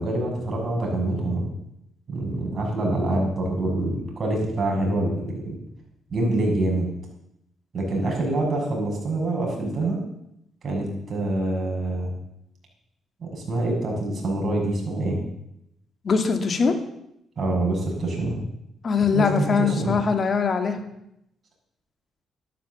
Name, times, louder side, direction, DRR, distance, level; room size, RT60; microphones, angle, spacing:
voice 1, 0.0-1.5 2.1-5.6 6.1-6.9 7.7-10.0 10.6-12.1 13.2-15.2 17.4-18.4 19.1-20.0, right 2 dB, 40° right, 0 dB, 6.5 m, -25 dB
voice 2, 16.0-16.8 18.8-20.8, left 5 dB, 45° left, 6 dB, 2.4 m, -22 dB
13.0 x 12.0 x 7.2 m, 0.80 s
cardioid pair, 90°, 0 cm